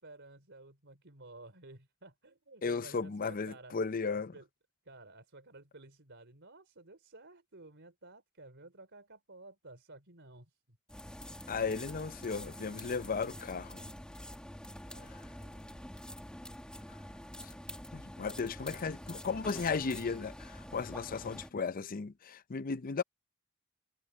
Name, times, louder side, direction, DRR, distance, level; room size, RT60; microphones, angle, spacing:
voice 1, 0.0-3.8 4.1-4.5 4.8-10.8 14.9-15.9 18.4-18.9, right 2 dB, 55° right, 4.3 m, -54 dB
voice 2, 2.6-4.3 11.5-13.9 15.0-15.2 17.4-17.5 17.9-23.0, left 5 dB, 40° left, 0.5 m, -35 dB
sound 1, 10.9-21.5, equal, 5° left, 1.7 m, -46 dB
head